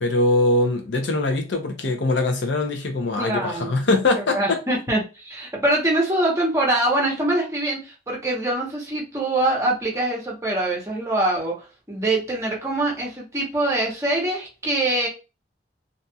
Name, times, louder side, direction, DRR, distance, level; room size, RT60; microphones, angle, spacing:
voice 1, 0.0-4.6, left 2 dB, 80° left, 0.7 m, -22 dB
voice 2, 3.2-3.9 4.2-15.1, right 1 dB, 15° right, 0.8 m, -24 dB
2.6 x 2.3 x 2.7 m
head